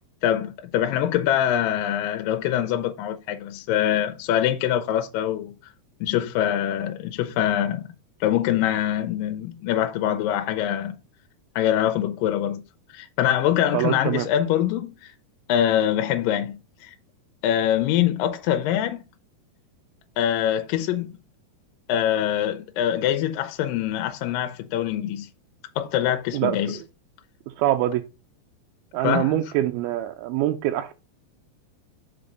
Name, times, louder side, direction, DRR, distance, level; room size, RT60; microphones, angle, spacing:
voice 1, 0.2-5.5 6.0-7.9 8.2-11.0 11.6-12.6 12.9-15.1 15.5-16.9 17.4-19.0 20.2-21.1 21.9-25.3 25.8-26.8 29.0-29.3, left 11 dB, 75° left, 2.2 m, -24 dB
voice 2, 13.7-14.3 26.3-26.8 27.6-28.0 28.9-30.9, right 13 dB, 85° right, 2.4 m, -24 dB
5.4 x 5.0 x 5.1 m
omnidirectional pair, 4.2 m